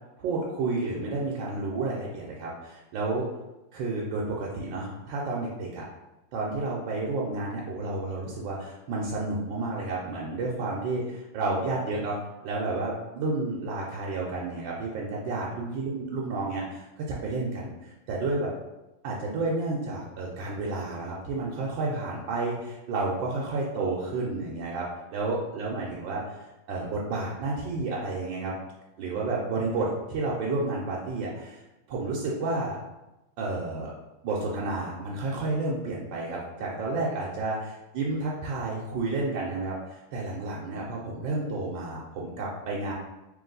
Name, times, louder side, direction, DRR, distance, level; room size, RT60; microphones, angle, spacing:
voice 1, 0.2-3.3 3.7-5.9 6.3-18.5 19.0-28.5 29.0-31.6 31.9-32.8 33.4-33.9 34.2-42.9, right 3 dB, 75° right, -4 dB, 1.3 m, -31 dB
3.4 x 3.0 x 3.8 m, 1.0 s
omnidirectional pair, 2.2 m